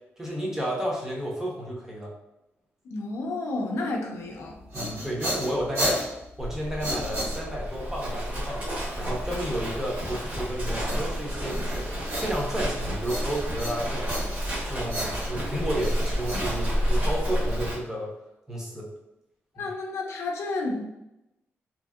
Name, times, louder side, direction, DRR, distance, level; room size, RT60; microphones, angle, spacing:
voice 1, 0.2-2.1 4.7-6.1 6.4-14.1 14.7-18.1 18.5-18.9 19.6-19.7, equal, 10° right, -2 dB, 0.6 m, -32 dB
voice 2, 2.8-4.6 19.6-20.8, left 2 dB, 75° left, 1 dB, 0.5 m, -31 dB
sound 1, 4.4-7.8 10.9-12.7 13.0-14.6 14.9-17.1, equal, 70° right, 1.1 m, -33 dB
Livestock farm animals working animals, 6.4-17.7, equal, 40° right, 0.9 m, -30 dB
2.7 x 2.6 x 2.4 m, 0.91 s
wide cardioid pair, 165°, 5 cm